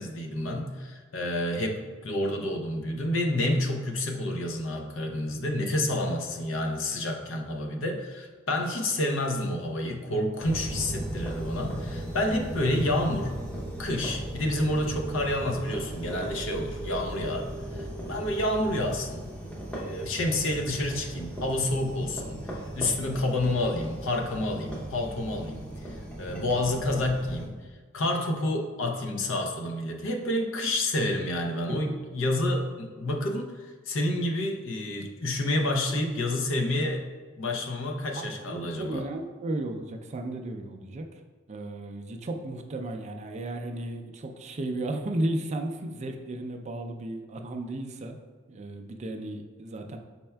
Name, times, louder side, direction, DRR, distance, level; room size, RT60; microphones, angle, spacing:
voice 1, 0.0-13.4 13.8-19.2 19.7-22.4 22.7-27.6 27.9-37.0 37.4-39.0, left 1 dB, 70° left, 3 dB, 0.6 m, -29 dB
sound 1, 10.4-27.5, right 1 dB, 5° left, 0.7 m, -37 dB
voice 2, 38.2-41.2 41.5-48.2 48.5-50.0, right 1 dB, 35° right, 4 dB, 0.4 m, -34 dB
5.5 x 4.2 x 2.2 m, 1.4 s
head